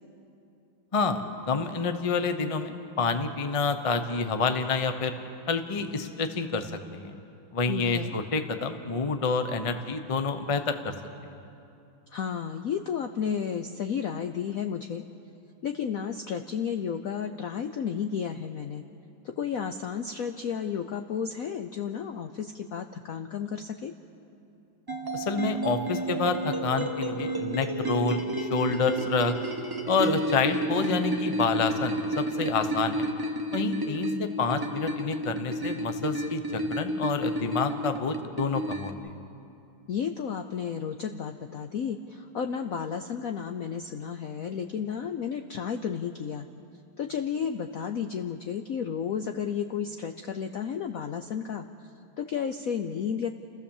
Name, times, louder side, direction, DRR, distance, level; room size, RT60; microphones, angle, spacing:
voice 1, 0.9-5.1 5.5-7.1 7.5-10.9 25.1-29.4 29.9-33.1 33.5-39.2, left 4 dB, 35° left, 8 dB, 0.5 m, -28 dB
voice 2, 7.6-8.1 12.1-15.0 15.6-18.8 19.2-23.9 33.8-34.2 39.9-46.5 47.0-51.7 52.2-53.4, left 7 dB, 70° left, 6 dB, 0.8 m, -32 dB
sound 1, 24.9-38.9, right 1 dB, 35° right, 0.3 m, -31 dB
30.0 x 15.0 x 7.2 m, 2.7 s
omnidirectional pair, 2.3 m